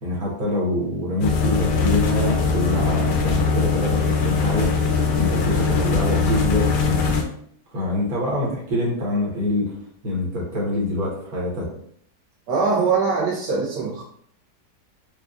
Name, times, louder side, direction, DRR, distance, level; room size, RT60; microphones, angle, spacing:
voice 1, 0.0-4.7 5.2-7.1 7.7-9.7 10.0-11.7, left 1 dB, 60° right, -3 dB, 1.6 m, -25 dB
sound 1, 1.2-7.2, left 4 dB, 80° left, 1.2 m, -21 dB
voice 2, 12.5-14.0, right 4 dB, 80° right, -5 dB, 1.4 m, -22 dB
4.7 x 2.4 x 2.4 m, 0.64 s
omnidirectional pair, 1.8 m